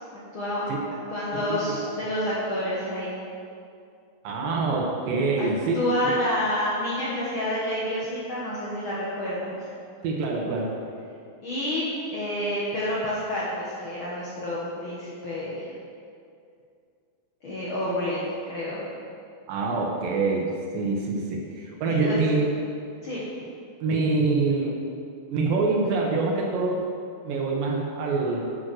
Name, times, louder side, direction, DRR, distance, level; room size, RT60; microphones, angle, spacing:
voice 1, 0.3-0.7 1.1-3.1 5.4-5.5 5.7-9.7 11.4-15.7 17.4-18.8 21.9-22.2 23.0-23.2, left 1 dB, 90° left, -8 dB, 1.1 m, -29 dB
voice 2, 1.3-1.9 4.2-6.1 10.0-10.7 19.5-22.4 23.8-24.8 25.3-26.8 27.3-28.5, right 3 dB, 75° right, -1 dB, 2.4 m, -25 dB
8.8 x 5.9 x 6.2 m, 2.4 s
omnidirectional pair, 4.4 m